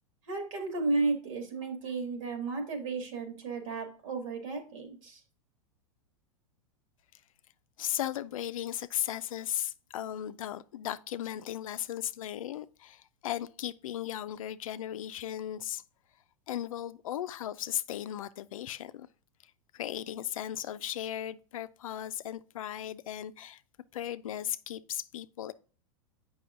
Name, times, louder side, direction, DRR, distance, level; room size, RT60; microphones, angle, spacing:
voice 1, 0.3-5.2, right 3 dB, 70° right, 2.0 m, -33 dB
voice 2, 7.8-15.8 16.5-19.1 19.7-23.6 23.9-25.5, left 11 dB, 80° left, 0.4 m, -36 dB
7.8 x 5.5 x 2.5 m
hypercardioid pair, 105°, 17 cm